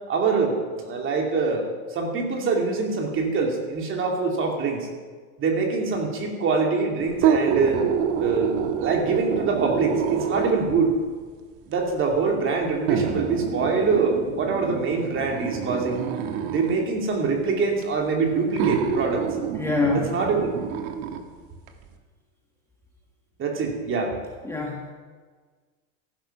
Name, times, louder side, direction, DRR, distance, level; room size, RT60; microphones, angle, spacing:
voice 1, 0.1-1.7 1.9-4.9 5.4-7.8 8.2-11.0 11.7-16.0 16.5-19.3 19.9-20.5 23.4-24.2, right 4 dB, 30° right, 1 dB, 2.8 m, -24 dB
sound 1, 7.1-10.8 11.7-11.8 12.9-16.8 17.8-17.9 18.6-21.2 21.7-21.8, right 7 dB, 45° right, 1.6 m, -27 dB
voice 2, 19.5-20.1 24.4-24.9, left 3 dB, 5° left, -1 dB, 1.6 m, -25 dB
14.5 x 11.5 x 5.9 m, 1.5 s
supercardioid pair, 135°, 42 cm